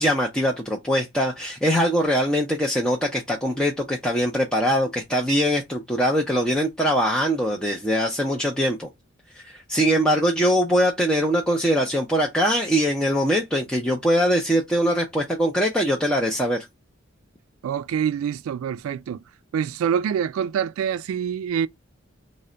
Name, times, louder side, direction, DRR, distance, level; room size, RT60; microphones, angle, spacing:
voice 1, 0.0-8.9 9.3-16.6, equal, 5° left, 0.4 m, -22 dB
voice 2, 17.6-19.2 19.5-21.7, right 8 dB, 90° right, 0.3 m, -25 dB
3.3 x 2.1 x 3.8 m
head